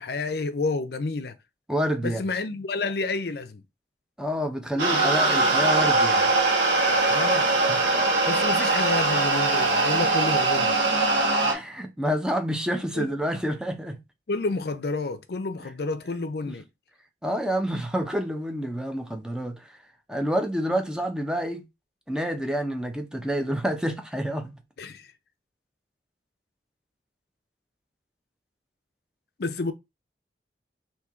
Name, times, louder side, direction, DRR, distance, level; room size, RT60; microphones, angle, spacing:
voice 1, 0.0-1.4 2.0-3.6 7.1-7.5 8.3-10.8 12.9-13.1 14.3-16.6 24.8-25.1 29.4-29.7, left 3 dB, 55° left, 0.5 m, -29 dB
voice 2, 1.7-2.2 4.2-6.3 7.7-7.8 11.4-14.0 17.2-19.7 20.1-21.6 22.1-24.5, equal, 5° right, 0.6 m, -28 dB
sound 1, 4.8-11.5, right 3 dB, 75° right, 1.4 m, -22 dB
4.3 x 2.8 x 3.5 m
head